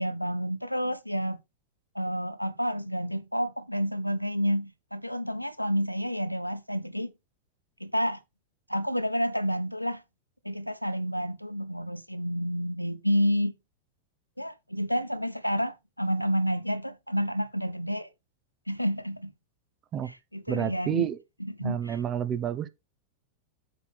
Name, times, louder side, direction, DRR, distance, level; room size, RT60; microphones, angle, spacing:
voice 1, 0.0-1.4 1.9-7.1 7.8-8.2 8.7-10.0 10.4-13.5 14.4-18.1 18.7-19.3 20.3-21.1 21.4-22.0, equal, 90° left, 0.7 m, -29 dB
voice 2, 20.5-21.2 21.6-22.7, right 10 dB, 30° right, 0.8 m, -29 dB
7.1 x 5.6 x 4.1 m
figure-of-eight pair, 90°, 0 cm